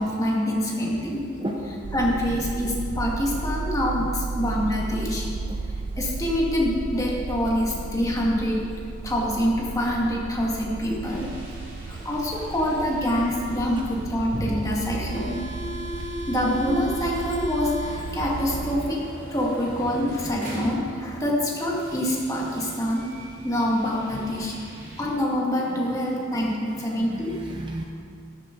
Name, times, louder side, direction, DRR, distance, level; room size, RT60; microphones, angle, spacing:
voice 1, 0.0-1.3 1.9-5.3 6.0-8.7 9.0-11.3 11.9-15.4 16.3-19.0 19.3-23.1 23.4-24.6 25.0-27.4, equal, 15° left, -3 dB, 2.0 m, -25 dB
voice 2, 1.4-2.1 5.5-5.6 11.9-12.1 24.9-25.0 25.7-25.9 26.4-27.8, right 1 dB, 25° right, 0 dB, 0.8 m, -35 dB
sound 1, 1.8-18.9, right 3 dB, 75° right, 0.5 m, -34 dB
sound 2, 11.0-25.1, equal, 45° right, 3.1 m, -39 dB
13.0 x 13.0 x 3.9 m, 2.5 s
head